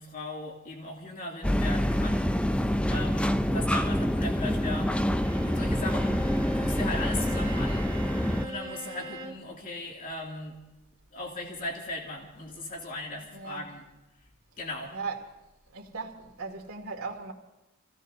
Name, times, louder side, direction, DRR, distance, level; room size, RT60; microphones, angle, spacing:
voice 1, 0.0-2.3 2.9-6.2 6.5-7.9 8.4-10.6 11.1-13.9 14.2-14.3 14.6-14.9, left 2 dB, 40° left, 2.6 m, -38 dB
sound 1, 1.4-8.5, equal, 5° left, 0.4 m, -26 dB
Bowed string instrument, 5.1-9.5, right 2 dB, 15° right, 1.8 m, -40 dB
voice 2, 13.3-13.6 14.9-15.2 15.7-17.3, right 4 dB, 85° right, 2.4 m, -37 dB
27.5 x 16.5 x 2.7 m
head